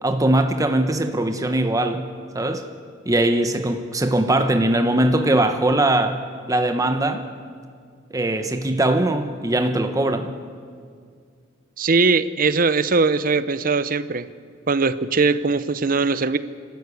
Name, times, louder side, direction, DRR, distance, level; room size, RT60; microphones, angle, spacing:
voice 1, 0.0-2.0 2.3-2.7 3.1-6.2 6.5-7.2 8.1-10.3, right 1 dB, 20° right, 7 dB, 0.9 m, -21 dB
voice 2, 11.8-14.3 14.7-16.4, right 4 dB, 50° right, 14 dB, 0.7 m, -20 dB
27.5 x 13.0 x 8.4 m, 2.1 s
head